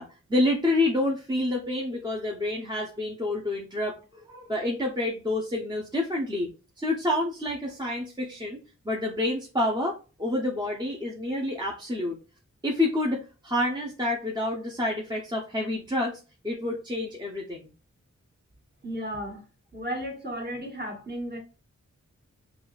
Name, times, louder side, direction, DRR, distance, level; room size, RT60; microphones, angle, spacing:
voice 1, 0.0-6.5 6.8-12.2 12.6-17.7, left 1 dB, 15° right, 0.7 m, -28 dB
voice 2, 18.8-19.4 19.7-21.4, equal, 35° right, 1.6 m, -34 dB
5.7 x 2.3 x 2.4 m
wide cardioid pair, 95°, 29 cm